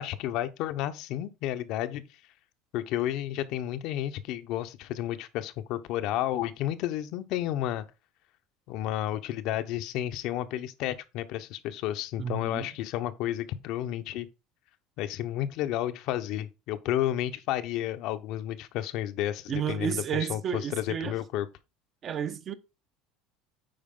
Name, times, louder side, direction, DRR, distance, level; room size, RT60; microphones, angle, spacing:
voice 1, 0.0-2.0 2.7-7.8 8.7-14.3 15.0-21.5, left 12 dB, 60° left, 0.7 m, -31 dB
voice 2, 12.2-12.7 19.5-21.1 22.0-22.6, right 8 dB, 35° right, 0.7 m, -31 dB
8.8 x 4.8 x 3.7 m
cardioid pair, 145°, 0 cm